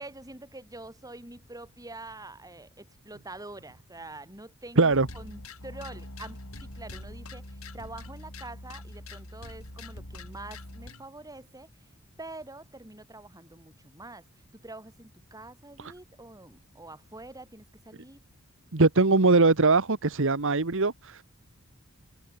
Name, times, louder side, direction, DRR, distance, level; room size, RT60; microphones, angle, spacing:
voice 1, 0.0-11.7 12.2-14.2 14.5-18.2, right 2 dB, 15° right, 5.6 m, -45 dB
voice 2, 4.8-5.1 18.7-21.2, right 3 dB, 65° right, 1.3 m, -21 dB
sound 1, 4.9-11.0, left 1 dB, 75° left, 7.2 m, -43 dB
head